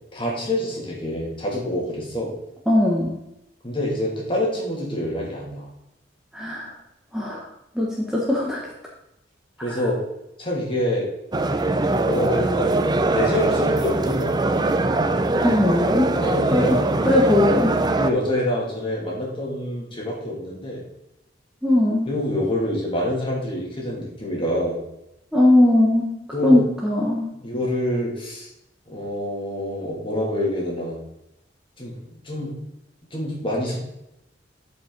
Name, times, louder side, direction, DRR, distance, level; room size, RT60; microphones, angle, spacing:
voice 1, 0.1-2.3 3.6-5.7 9.6-10.0 10.4-11.1 12.0-12.7 13.1-14.7 16.2-16.9 18.0-20.8 22.1-24.8 26.3-26.6 27.4-28.5 28.9-31.0 31.8-32.6 33.1-33.8, left 1 dB, 30° left, -3 dB, 2.6 m, -26 dB
voice 2, 2.7-3.1 6.3-6.7 7.1-7.5 7.7-8.6 15.4-16.1 16.5-16.8 17.0-17.7 21.6-22.1 25.3-26.1 26.4-27.3, left 1 dB, 5° right, -4 dB, 1.2 m, -19 dB
sound 1, 11.3-18.1, right 2 dB, 20° right, 0.5 m, -22 dB
12.0 x 5.3 x 4.0 m, 0.86 s
head